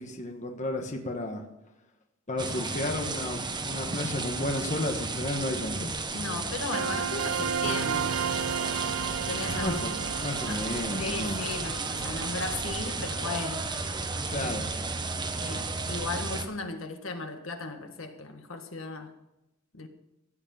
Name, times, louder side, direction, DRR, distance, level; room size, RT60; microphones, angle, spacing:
voice 1, 0.0-1.4 2.3-5.9 9.6-11.4 14.3-14.7, left 1 dB, 35° left, 3 dB, 1.4 m, -32 dB
sound 1, 2.4-16.5, right 3 dB, 20° right, 1.1 m, -33 dB
voice 2, 6.1-8.1 9.3-9.8 10.4-10.6 11.0-13.6 15.4-19.1 19.7-19.9, left 3 dB, 65° left, 5 dB, 1.8 m, -36 dB
sound 2, 6.7-13.4, right 7 dB, 85° right, 0.5 m, -33 dB
sound 3, 8.0-13.3, left 2 dB, 90° left, 1.1 m, -45 dB
16.0 x 8.4 x 5.6 m, 0.89 s
head